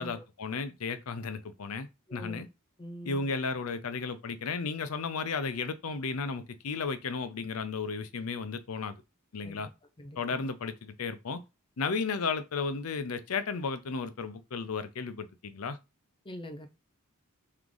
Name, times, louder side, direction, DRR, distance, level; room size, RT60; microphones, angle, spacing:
voice 1, 0.0-2.5 3.0-9.0 9.3-9.7 10.2-11.4 11.8-15.8, left 4 dB, 90° left, 0.6 m, -34 dB
voice 2, 2.1-2.4 2.8-3.3 9.4-9.6 10.0-10.4 16.2-16.7, equal, 25° left, 0.6 m, -43 dB
3.6 x 3.2 x 3.8 m
head